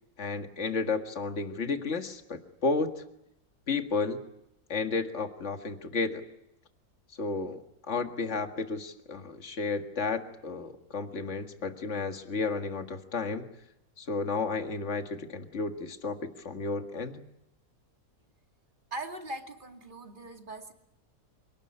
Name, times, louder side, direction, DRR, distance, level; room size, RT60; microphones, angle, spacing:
voice 1, 0.2-2.9 3.7-4.2 4.7-6.2 7.2-7.6 7.9-13.5 14.0-17.2, left 4 dB, 45° left, 6 dB, 2.1 m, -32 dB
voice 2, 18.9-20.7, right 2 dB, 30° right, 4 dB, 2.5 m, -40 dB
27.0 x 19.5 x 9.8 m, 0.82 s
omnidirectional pair, 1.7 m